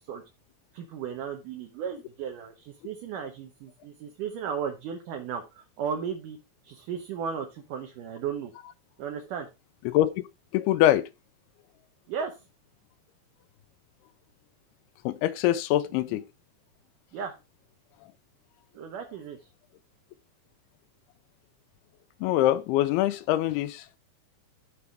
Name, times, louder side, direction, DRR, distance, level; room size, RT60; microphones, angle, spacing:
voice 1, 0.7-6.4 6.6-8.5 9.0-9.5 12.1-12.4 17.1-17.3 18.7-19.4, right 7 dB, 70° right, 2.3 m, -35 dB
voice 2, 10.5-11.1 15.1-16.2 22.2-24.0, left 14 dB, 90° left, 2.6 m, -24 dB
14.0 x 4.8 x 3.4 m
omnidirectional pair, 4.4 m